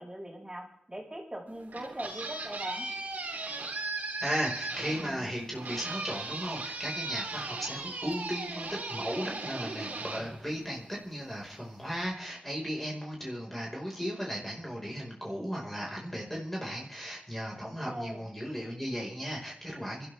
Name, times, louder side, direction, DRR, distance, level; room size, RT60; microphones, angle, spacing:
voice 1, 0.0-2.9 17.8-18.2, right 1 dB, 25° right, -1 dB, 6.5 m, -40 dB
sound 1, 1.5-11.1, right 3 dB, 85° right, 3.8 m, -38 dB
voice 2, 4.2-20.1, equal, 5° left, -2 dB, 4.9 m, -36 dB
25.5 x 13.0 x 3.5 m, 0.74 s
cardioid pair, 45°, 3 cm